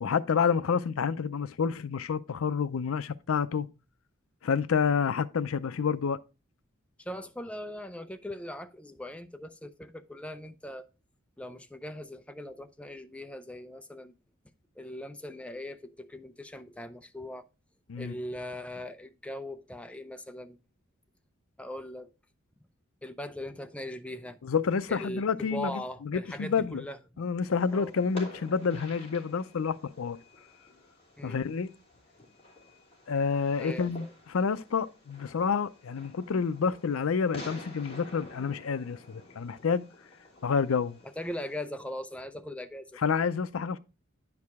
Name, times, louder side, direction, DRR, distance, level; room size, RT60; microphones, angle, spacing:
voice 1, 0.0-3.7 4.4-6.2 17.9-18.2 24.4-26.8 27.2-30.2 31.2-31.7 33.1-39.9 40.4-41.0 43.0-43.8, left 6 dB, 75° left, 0.5 m, -29 dB
voice 2, 7.0-10.9 11.4-14.1 14.8-17.5 18.0-20.6 21.6-22.1 23.0-24.4 24.9-27.0 27.7-27.9 31.2-31.4 33.6-34.1 41.0-43.0, left 1 dB, 5° left, 0.5 m, -40 dB
Fireworks, 27.4-41.6, left 2 dB, 30° left, 2.9 m, -49 dB
9.4 x 4.8 x 3.5 m
head